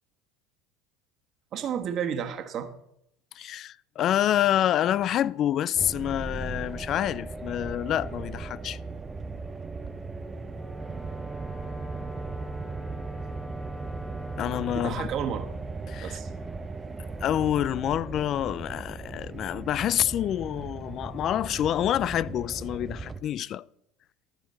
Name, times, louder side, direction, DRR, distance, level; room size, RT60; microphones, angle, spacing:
voice 1, 1.5-2.7 14.7-15.5 16.0-16.3, right 8 dB, 45° right, 1.3 m, -31 dB
voice 2, 3.3-8.8 14.4-15.1 15.9-16.2 17.2-23.6, left 11 dB, 50° left, 0.3 m, -27 dB
sound 1, 5.8-23.2, right 3 dB, 20° right, 0.7 m, -37 dB
Wind instrument woodwind instrument, 10.5-15.0, equal, 15° left, 1.1 m, -42 dB
13.5 x 5.1 x 5.4 m
supercardioid pair, 95°, 0 cm